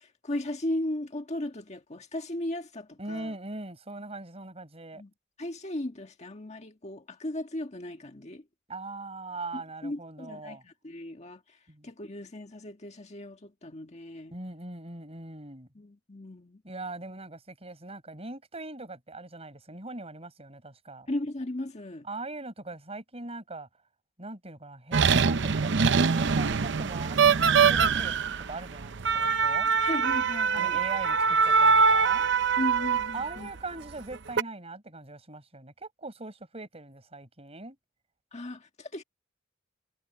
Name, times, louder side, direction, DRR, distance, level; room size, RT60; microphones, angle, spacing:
voice 1, 0.0-3.3 4.9-5.1 5.4-8.4 9.5-14.3 15.7-16.6 21.1-22.1 29.8-30.8 32.6-33.5 38.3-39.0, left 1 dB, 35° left, 1.6 m, -36 dB
voice 2, 3.0-5.0 8.7-10.6 11.7-11.9 14.3-15.7 16.6-21.1 22.1-23.7 24.2-29.7 30.5-32.3 33.1-37.8, right 2 dB, 30° right, 5.5 m, -41 dB
sound 1, 24.9-33.4 34.1-34.4, right 5 dB, 65° right, 0.7 m, -23 dB
head